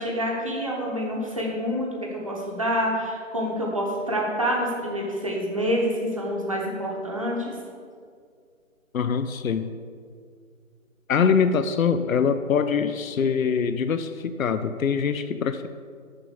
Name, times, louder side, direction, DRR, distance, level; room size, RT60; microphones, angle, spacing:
voice 1, 0.0-7.6, equal, 25° right, -2 dB, 1.0 m, -27 dB
voice 2, 8.9-9.7 11.1-15.7, left 6 dB, 80° left, 11 dB, 0.6 m, -23 dB
6.8 x 5.4 x 7.2 m, 2.1 s
figure-of-eight pair, 175°, 41 cm